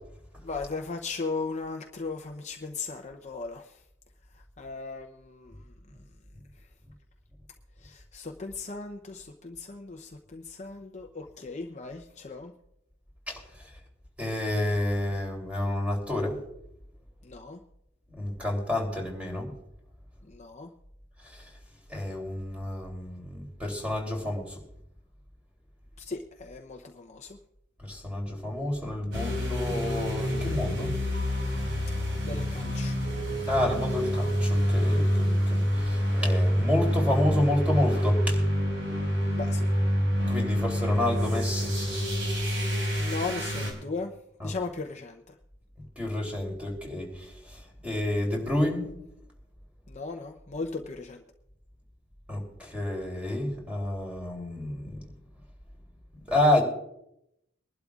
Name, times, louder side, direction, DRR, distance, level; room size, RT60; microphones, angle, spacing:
voice 1, 0.4-3.8 4.6-5.7 7.8-12.5 17.2-17.6 20.3-20.7 26.0-27.4 32.2-33.0 39.3-39.7 42.7-44.1 44.4-45.3 49.9-51.2, left 4 dB, 35° left, 3 dB, 0.7 m, -37 dB
voice 2, 14.2-16.3 18.2-19.5 21.9-24.6 27.9-30.9 33.5-38.4 40.2-41.7 44.4-44.5 46.0-48.9 52.3-55.0 56.3-56.6, left 1 dB, 5° right, 0 dB, 3.3 m, -29 dB
sound 1, 29.1-43.7, equal, 70° right, 4.8 m, -27 dB
24.0 x 11.5 x 2.4 m, 0.80 s
head